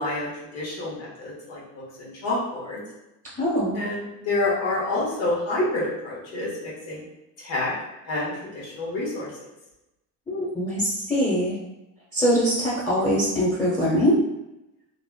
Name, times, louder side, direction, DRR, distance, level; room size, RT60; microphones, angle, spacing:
voice 1, 0.0-1.6 2.0-2.8 3.7-7.0 7.4-7.7 8.1-9.3, left 2 dB, 70° left, -6 dB, 1.5 m, -28 dB
voice 2, 3.4-3.8 10.3-11.5 12.1-14.2, equal, 5° left, -7 dB, 0.9 m, -22 dB
2.8 x 2.5 x 2.2 m, 0.92 s
supercardioid pair, 75°, 47 cm